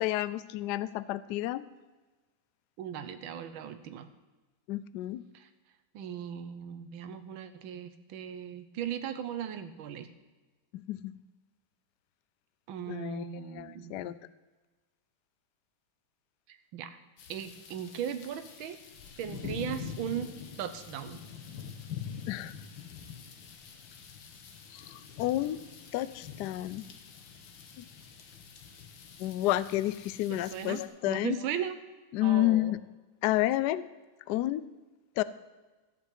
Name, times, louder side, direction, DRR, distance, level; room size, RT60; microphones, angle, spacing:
voice 1, 0.0-1.7 4.7-5.2 10.7-11.2 12.9-13.3 13.5-14.1 22.3-22.5 24.7-25.6 25.9-26.9 27.8-27.9 29.2-31.4 32.1-32.8 33.2-33.9 34.3-34.6 35.2-35.3, left 15 dB, 90° left, 16 dB, 0.9 m, -30 dB
voice 2, 2.8-4.1 5.3-5.5 5.9-10.1 12.7-14.1 16.5-17.0 17.3-18.8 19.2-20.3 20.6-21.2 30.3-31.8 32.2-32.7, right 9 dB, 70° right, 10 dB, 1.6 m, -38 dB
sound 1, 17.2-30.9, left 7 dB, 65° left, 1.8 m, -45 dB
15.0 x 5.3 x 8.2 m, 1.2 s
omnidirectional pair, 2.3 m